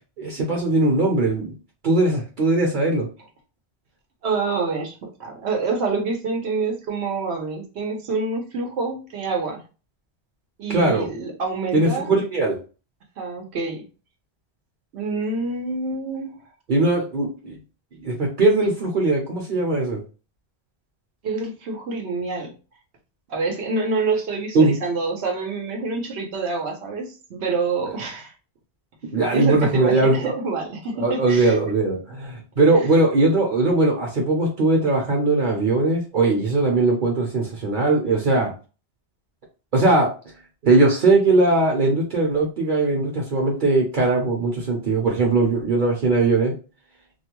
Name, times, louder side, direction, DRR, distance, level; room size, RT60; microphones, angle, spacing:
voice 1, 0.2-1.5 1.8-3.1 10.7-11.1 11.7-12.6 16.7-17.6 18.0-20.0 24.5-24.8 29.0-30.3 31.0-38.5 39.7-40.1 40.6-46.5, right 2 dB, 55° right, -1 dB, 0.8 m, -20 dB
voice 2, 4.2-9.6 10.6-12.1 13.2-13.8 14.9-16.4 21.2-22.5 23.3-28.3 29.3-31.6 32.7-32.9, right 4 dB, 85° right, 2 dB, 1.0 m, -27 dB
2.5 x 2.2 x 2.9 m, 0.33 s
omnidirectional pair, 1.1 m